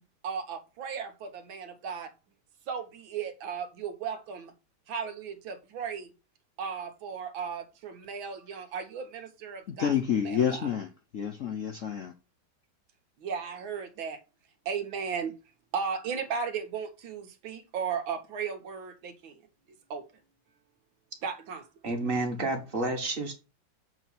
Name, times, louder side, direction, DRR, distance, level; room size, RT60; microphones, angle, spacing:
voice 1, 0.2-2.1 2.7-4.5 4.9-6.1 6.6-9.9 10.2-10.7 13.2-14.2 14.7-15.3 15.7-19.3 19.9-20.1 21.2-21.7, right 6 dB, 85° right, 1.9 m, -35 dB
voice 2, 9.7-12.1, left 8 dB, 65° left, 0.8 m, -29 dB
voice 3, 21.8-23.3, right 2 dB, 30° right, 1.5 m, -30 dB
7.5 x 3.0 x 5.7 m
omnidirectional pair, 2.1 m